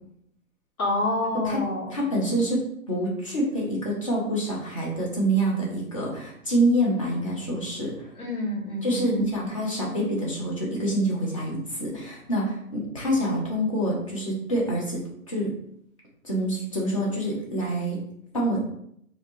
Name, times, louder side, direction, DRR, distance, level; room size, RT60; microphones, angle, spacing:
voice 1, 0.8-2.0 8.2-9.3, left 1 dB, 85° left, -3 dB, 1.4 m, -28 dB
voice 2, 1.3-1.6 1.9-8.1 8.8-15.0 15.3-15.5 16.2-18.0 18.3-18.6, right 1 dB, 25° left, -4 dB, 0.5 m, -26 dB
3.0 x 2.6 x 2.9 m, 0.72 s
hypercardioid pair, 160°, 43 cm